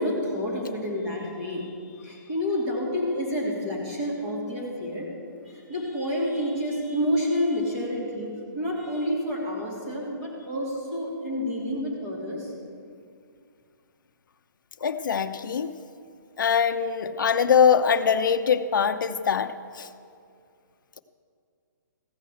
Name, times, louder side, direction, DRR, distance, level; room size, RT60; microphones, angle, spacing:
voice 1, 0.0-1.7 2.0-5.1 5.4-12.5, left 1 dB, 25° right, -4 dB, 2.7 m, -29 dB
voice 2, 14.8-15.7 16.4-19.9, left 7 dB, 75° left, 8 dB, 0.7 m, -23 dB
15.5 x 5.6 x 7.8 m, 2.3 s
hypercardioid pair, 180°, 11 cm